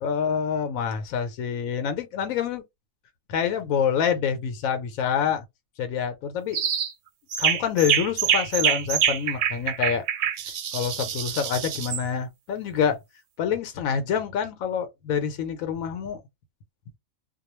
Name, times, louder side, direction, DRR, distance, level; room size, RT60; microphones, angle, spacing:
voice 1, 0.0-2.6 3.3-5.4 5.8-6.6 7.4-10.0 10.7-13.0 13.4-16.2, left 7 dB, 85° left, 1.0 m, -26 dB
sound 1, 6.5-6.9 7.3-12.0, right 9 dB, 90° right, 1.0 m, -25 dB
2.3 x 2.2 x 3.0 m
omnidirectional pair, 1.4 m